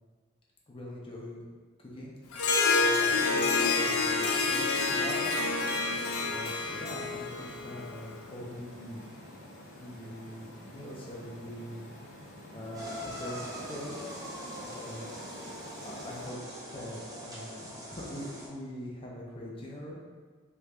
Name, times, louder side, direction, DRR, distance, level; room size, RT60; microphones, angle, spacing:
voice 1, 0.7-1.4 1.8-2.1 2.5-5.3 6.2-9.0 9.7-11.9 12.5-14.0 14.6-15.1 15.7-16.4 16.7-20.0, left 1 dB, 25° left, -4 dB, 0.6 m, -43 dB
Harp, 2.3-8.0, left 3 dB, 90° left, 0.4 m, -28 dB
sound 1, 3.0-16.3, left 1 dB, 65° left, 0.8 m, -49 dB
sound 2, 12.7-18.5, equal, 15° right, 0.6 m, -42 dB
3.3 x 3.0 x 2.4 m, 1.5 s
head